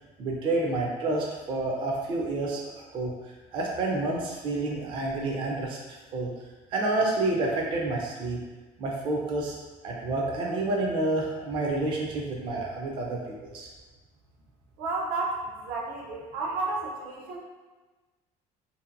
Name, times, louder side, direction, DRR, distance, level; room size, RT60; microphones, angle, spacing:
voice 1, 0.2-3.1 3.5-5.8 6.1-6.3 6.7-8.4 8.8-9.5 9.8-13.7, right 2 dB, 35° right, -2 dB, 0.4 m, -29 dB
voice 2, 14.8-17.4, right 3 dB, 85° right, -2 dB, 0.6 m, -32 dB
2.6 x 2.5 x 2.5 m, 1.3 s
cardioid pair, 170°, 14 cm